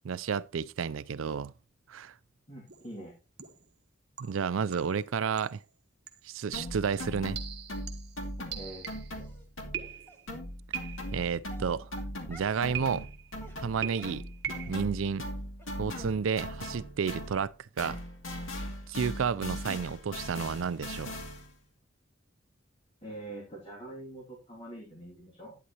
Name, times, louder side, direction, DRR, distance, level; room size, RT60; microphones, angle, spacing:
voice 1, 0.0-1.5 1.9-2.1 4.2-5.6 6.2-7.4 11.1-11.9 12.3-13.1 13.6-14.2 14.7-15.2 15.8-18.0 18.9-21.2, right 6 dB, 85° right, 0.4 m, -31 dB
voice 2, 2.5-3.1 8.4-8.9 23.0-25.6, right 1 dB, 30° left, 2.6 m, -44 dB
sound 1, 2.7-2.9 3.4-3.7 4.2-5.1 5.4-5.6 6.1-6.3 7.0-9.2 9.7-10.3 10.7-11.3 12.7-13.3 13.8-14.9, right 9 dB, 55° right, 1.2 m, -41 dB
sound 2, 6.5-10.0 10.3-17.5 17.8-21.6, equal, 85° left, 2.4 m, -39 dB
Dog, 9.1-9.5 10.1-10.2 11.0-11.1 11.5-12.6 12.9-13.1 13.4-14.9 15.2-15.3 15.6-15.7 16.0-16.1 16.5-16.6 17.0-17.1 17.3-17.4, right 1 dB, 10° left, 1.9 m, -54 dB
11.5 x 9.5 x 3.0 m
head